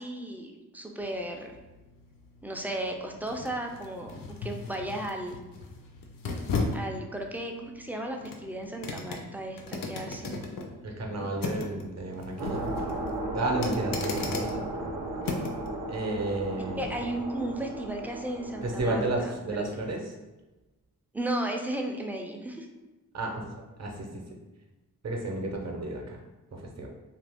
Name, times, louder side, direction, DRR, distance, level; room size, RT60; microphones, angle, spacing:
voice 1, 0.0-1.5 2.4-5.4 6.7-10.4 16.8-19.6 21.1-22.7, right 1 dB, 5° right, 2 dB, 0.3 m, -35 dB
sound 1, 1.0-15.7 16.1-16.3, left 3 dB, 70° left, 0.5 m, -37 dB
voice 2, 10.8-12.7 13.3-14.6 15.9-16.9 18.6-20.0 23.1-24.1 25.0-26.2 26.5-26.9, right 2 dB, 45° right, 1 dB, 0.7 m, -32 dB
sound 2, 12.4-19.2, right 1 dB, 90° right, 0.6 m, -35 dB
2.7 x 2.5 x 3.4 m, 1.1 s
wide cardioid pair, 95°, 35 cm